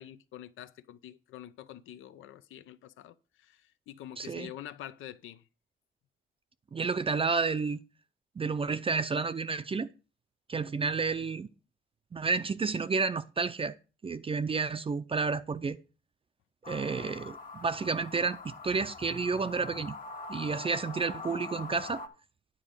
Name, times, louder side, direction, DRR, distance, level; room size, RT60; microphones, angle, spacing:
voice 1, 0.0-5.4, left 12 dB, 80° left, 0.7 m, -46 dB
voice 2, 4.2-4.5 6.7-7.8 8.4-9.9 10.5-11.5 12.1-13.8 14.0-15.8 16.7-20.0 20.3-22.0, right 4 dB, 30° right, 0.5 m, -31 dB
sound 1, 16.6-22.1, left 4 dB, 45° left, 1.7 m, -43 dB
9.9 x 3.8 x 7.3 m
cardioid pair, 90°, 20 cm